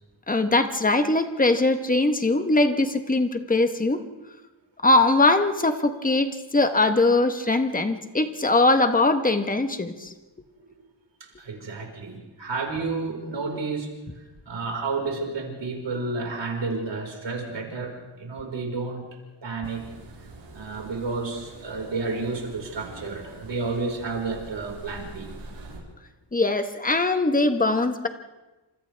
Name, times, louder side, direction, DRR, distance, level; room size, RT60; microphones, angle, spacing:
voice 1, 0.3-4.0 4.8-10.1 26.3-28.1, left 2 dB, 20° left, 7 dB, 1.2 m, -21 dB
voice 2, 11.2-13.9 14.4-19.1 19.4-19.8 20.5-25.3, right 3 dB, 65° right, 0 dB, 5.1 m, -31 dB
sound 1, 19.6-25.8, right 2 dB, 90° right, 7.0 m, -44 dB
29.5 x 26.5 x 3.5 m, 1.1 s
wide cardioid pair, 155°, 47 cm